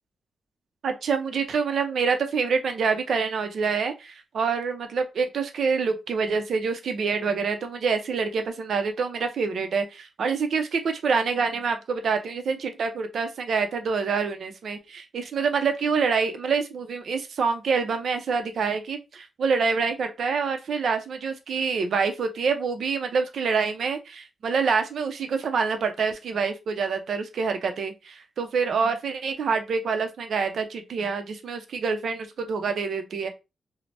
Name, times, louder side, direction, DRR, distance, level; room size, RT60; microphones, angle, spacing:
voice 1, 0.8-33.3, right 5 dB, 65° right, 0.5 m, -26 dB
3.2 x 2.0 x 2.5 m
wide cardioid pair, 125°, 0 cm